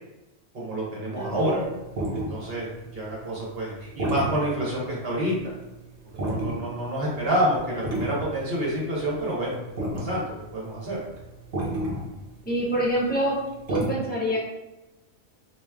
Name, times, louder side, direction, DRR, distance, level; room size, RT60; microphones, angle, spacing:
voice 1, 0.5-1.6 2.1-5.5 6.1-9.6 9.9-10.3 10.5-11.0, right 1 dB, 55° right, -5 dB, 1.4 m, -28 dB
voice 2, 1.1-1.7 12.4-13.4 13.7-14.4, equal, 10° left, -5 dB, 0.8 m, -26 dB
sound 1, 1.2-5.3 5.6-5.7 6.1-6.7 7.1-7.4 7.7-13.0 13.3-13.9, right 1 dB, 75° right, 1.1 m, -31 dB
3.1 x 2.7 x 3.5 m, 1.0 s
omnidirectional pair, 1.2 m